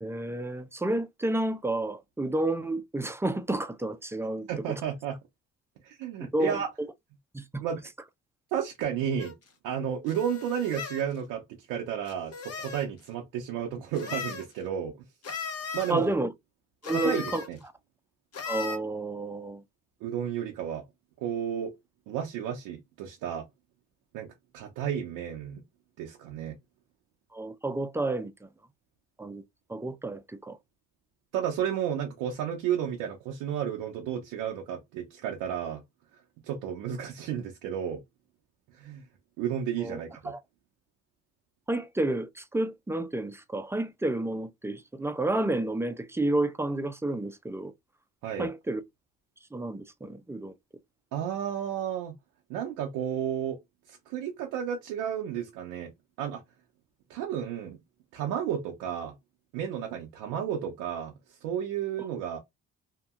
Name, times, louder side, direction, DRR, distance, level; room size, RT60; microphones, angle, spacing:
voice 1, 0.0-4.8 6.2-6.6 7.3-7.6 15.9-16.3 16.8-17.4 18.4-19.6 27.3-28.3 29.2-29.4 29.7-30.6 39.8-40.0 40.2-40.4 41.7-47.7 48.4-48.8 49.5-50.5, right 2 dB, 10° right, 0.5 m, -30 dB
voice 2, 4.5-5.2 5.8-6.7 7.6-7.8 8.5-9.3 9.6-15.0 15.7-16.1 16.9-17.6 20.0-20.8 21.2-21.8 22.1-23.5 24.1-25.6 26.0-26.6 31.3-35.8 36.4-38.0 38.7-39.0 39.4-40.3 48.2-48.5 51.1-52.1 52.5-53.6 53.9-55.9 56.2-56.4 57.1-57.8 58.1-59.1 59.5-62.4, right 9 dB, 90° right, 0.6 m, -32 dB
sound 1, 9.2-9.3 10.1-11.0 12.1-12.9 13.9-14.5 15.2-15.9 16.8-17.5 18.3-18.8, left 5 dB, 45° left, 1.0 m, -37 dB
2.8 x 2.6 x 2.4 m
supercardioid pair, 60°, 33 cm